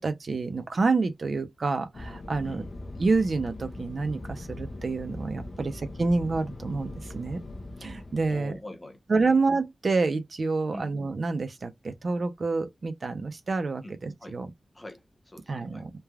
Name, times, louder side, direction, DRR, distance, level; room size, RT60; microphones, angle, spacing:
voice 1, 0.0-2.6 3.0-5.7 6.0-7.4 7.8-8.5 9.1-14.5 15.5-15.9, right 3 dB, 50° right, 0.5 m, -28 dB
Fixed-wing aircraft airplane, 1.9-8.6, left 2 dB, 45° left, 0.5 m, -41 dB
voice 2, 2.4-2.7 5.6-5.7 8.3-9.3 10.7-10.9 13.8-14.4 14.7-15.9, left 1 dB, 15° left, 0.8 m, -44 dB
3.2 x 2.2 x 2.3 m
wide cardioid pair, 135°, 0 cm